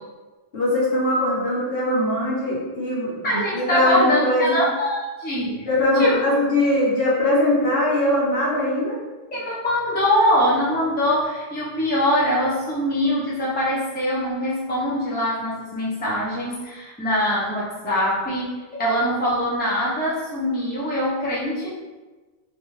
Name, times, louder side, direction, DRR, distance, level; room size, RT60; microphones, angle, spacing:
voice 1, 0.5-4.6 5.6-9.0, left 1 dB, 65° left, -7 dB, 1.1 m, -21 dB
voice 2, 3.2-5.7 6.0-6.2 9.3-21.7, equal, 10° left, -8 dB, 0.5 m, -23 dB
2.6 x 2.3 x 3.1 m, 1.3 s
omnidirectional pair, 1.1 m